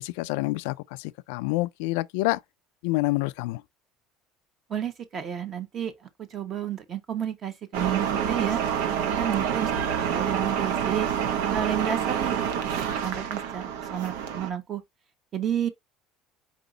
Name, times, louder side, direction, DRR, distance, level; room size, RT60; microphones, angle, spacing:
voice 1, 0.0-2.4 2.8-3.6, left 21 dB, 90° left, 0.3 m, -27 dB
voice 2, 4.7-5.9 6.3-8.6 9.1-11.1 11.4-12.4 12.6-14.8 15.3-15.7, right 9 dB, 30° right, 1.1 m, -31 dB
sound 1, 7.7-14.5, right 8 dB, 90° right, 1.1 m, -27 dB
4.9 x 2.8 x 3.8 m
cardioid pair, 160°, 0 cm